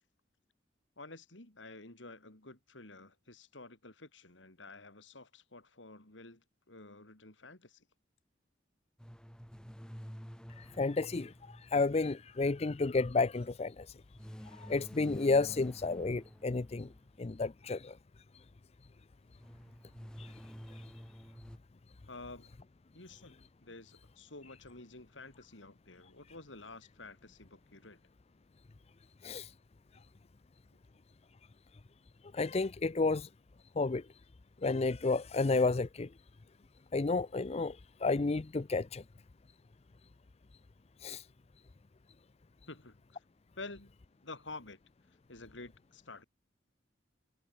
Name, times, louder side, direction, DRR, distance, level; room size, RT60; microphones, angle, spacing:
voice 1, 1.0-7.8 22.1-22.6 22.9-28.0 42.7-43.2 43.6-44.0 44.2-44.8 45.3-46.2, left 3 dB, 85° left, 4.1 m, -50 dB
sound 1, 9.0-12.5 14.1-17.3 19.4-21.6, equal, 5° left, 3.2 m, -50 dB
voice 2, 10.6-13.9 14.6-16.9 17.2-18.0 20.2-20.3 29.2-29.5 32.3-33.3 33.8-34.0 34.6-36.1 36.9-39.0 41.0-41.2, left 3 dB, 35° left, 0.5 m, -31 dB
head